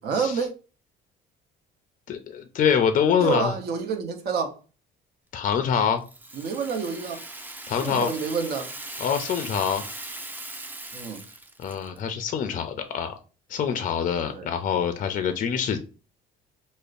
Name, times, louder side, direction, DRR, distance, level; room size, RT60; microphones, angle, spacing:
voice 1, 0.0-0.5 3.2-4.5 6.4-7.2 7.8-8.7 10.9-11.2 14.2-14.5, right 5 dB, 60° right, 0.8 m, -28 dB
voice 2, 2.1-3.5 5.3-6.0 7.7-8.1 9.0-9.8 11.6-13.2 13.5-15.8, left 7 dB, 45° left, 0.5 m, -25 dB
Rattle (instrument), 6.0-12.0, right 2 dB, 10° right, 0.4 m, -39 dB
5.1 x 2.1 x 2.5 m
cardioid pair, 105°, 19 cm